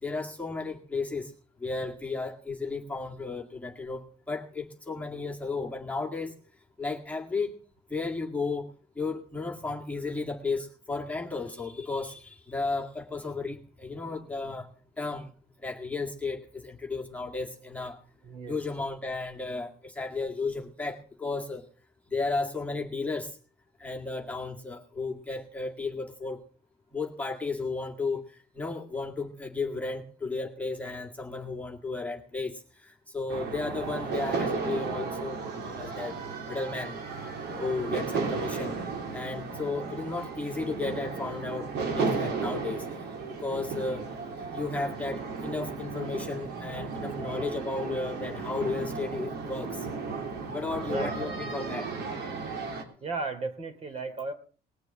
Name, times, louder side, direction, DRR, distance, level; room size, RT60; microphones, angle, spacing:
voice 1, 0.0-1.3 1.6-6.3 6.8-7.5 7.9-8.7 9.0-14.7 15.0-15.3 15.6-18.0 18.5-21.6 22.1-23.3 23.8-26.4 26.9-28.2 28.6-32.6 33.1-36.1 36.5-37.0 37.5-38.8 39.1-42.8 43.4-44.0 44.5-49.8 50.4-51.9, left 3 dB, 10° left, -1 dB, 1.9 m, -34 dB
voice 2, 18.2-18.6 38.5-38.7 50.8-51.4 53.0-54.3, right 3 dB, 35° right, 7 dB, 3.0 m, -35 dB
sound 1, 33.3-52.8, right 4 dB, 75° right, 3.0 m, -34 dB
20.0 x 6.8 x 7.2 m, 0.40 s
cardioid pair, 110°, 17 cm